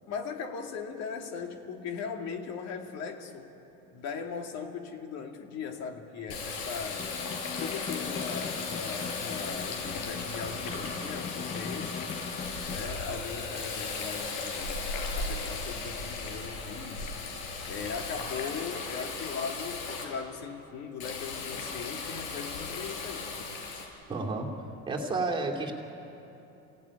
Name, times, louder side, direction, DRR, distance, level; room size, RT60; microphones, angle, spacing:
voice 1, 0.1-3.5 3.9-7.2 7.6-12.1 12.7-17.1 17.7-23.3, left 6 dB, 50° left, 3 dB, 2.5 m, -39 dB
Water tap faucet, 6.3-20.0 21.0-23.9, left 4 dB, 70° left, 6.2 m, -36 dB
Snare drum, 6.8-13.0, left 6 dB, 20° left, 0.5 m, -40 dB
voice 2, 24.1-25.7, right 3 dB, 15° right, -1 dB, 2.8 m, -31 dB
28.5 x 18.0 x 9.9 m, 3.0 s
cardioid pair, 150°, 34 cm